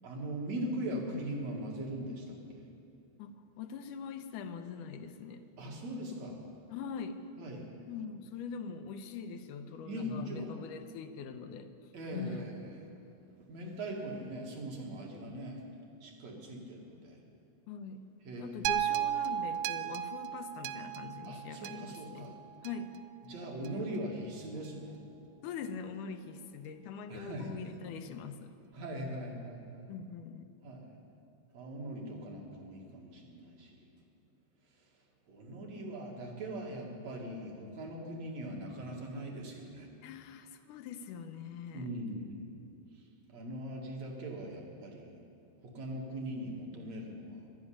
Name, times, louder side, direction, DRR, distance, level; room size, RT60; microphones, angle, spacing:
voice 1, 0.0-2.7 5.6-6.4 7.4-7.7 9.9-10.5 11.9-12.6 13.5-15.6 16.0-17.2 18.2-18.7 21.3-22.4 23.2-25.0 27.1-27.5 28.7-29.9 30.6-30.9 31.5-33.8 35.3-39.9 41.7-42.5 42.9-45.2 45.6-47.5, right 1 dB, 60° right, -1 dB, 2.8 m, -41 dB
voice 2, 3.2-5.5 6.7-7.2 7.9-11.7 12.1-12.5 17.7-18.0 18.4-22.3 22.6-23.0 23.7-24.0 25.4-28.5 29.9-30.5 40.0-41.9, left 6 dB, 85° left, 8 dB, 2.3 m, -43 dB
sound 1, 18.7-23.0 23.7-23.8, right 11 dB, 85° right, 2.1 m, -35 dB
12.0 x 10.5 x 10.0 m, 2.5 s
omnidirectional pair, 3.6 m